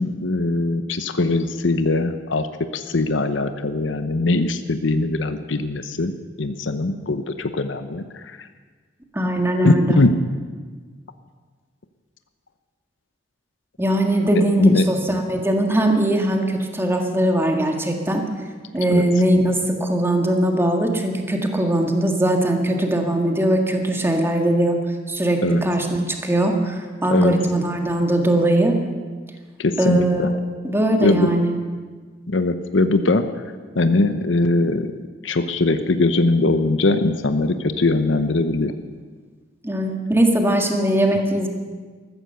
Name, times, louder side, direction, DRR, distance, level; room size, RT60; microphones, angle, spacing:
voice 1, 0.0-2.5 2.7-6.1 6.4-8.5 9.6-10.2 14.3-15.2 18.9-19.0 25.4-25.6 27.1-27.3 29.6-30.3 31.0-31.3 32.3-33.3 33.7-34.9 35.2-38.7, left 2 dB, 85° left, 10 dB, 0.8 m, -21 dB
voice 2, 9.1-10.0 13.8-18.3 18.7-24.8 25.1-28.8 29.8-30.4 30.6-31.6 39.6-41.5, right 1 dB, 15° right, 3 dB, 1.7 m, -20 dB
14.0 x 14.0 x 6.8 m, 1.5 s
head